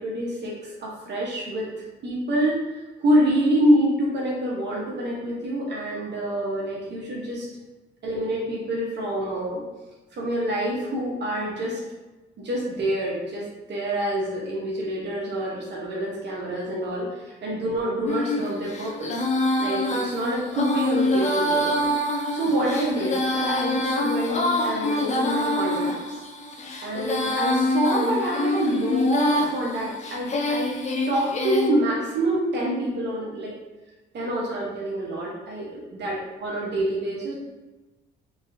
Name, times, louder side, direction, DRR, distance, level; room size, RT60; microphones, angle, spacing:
voice 1, 0.0-7.5 8.0-9.6 10.1-11.8 12.4-19.2 19.6-21.9 22.3-26.2 26.8-30.8 31.1-33.5 34.1-36.1 36.4-37.3, right 1 dB, 60° right, -4 dB, 1.0 m, -26 dB
Female singing, 18.1-31.7, left 1 dB, 35° left, 0.6 m, -26 dB
3.5 x 3.3 x 2.7 m, 1.1 s
cardioid pair, 90°, 20 cm